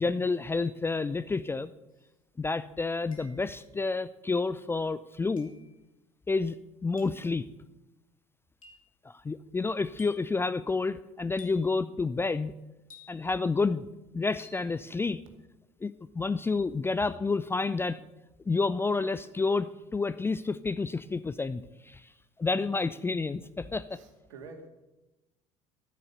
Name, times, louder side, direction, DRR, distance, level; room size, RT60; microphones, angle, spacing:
voice 1, 0.0-1.7 2.4-5.5 6.3-6.6 6.8-7.5 9.0-12.5 13.1-13.9 14.1-15.2 15.8-18.0 18.5-22.0 22.4-24.0, left 4 dB, 15° left, 15 dB, 0.4 m, -29 dB
sound 1, 1.9-2.0 3.1-3.7 5.4-5.7 7.0-7.3 8.6-9.0 10.0-10.4 11.4-11.8 12.9-13.4 14.4-14.7, left 5 dB, 80° left, 2.3 m, -53 dB
voice 2, 23.9-24.7, right 3 dB, 65° right, 4 dB, 2.2 m, -47 dB
12.5 x 9.5 x 6.7 m, 1.0 s
figure-of-eight pair, 60°, 17 cm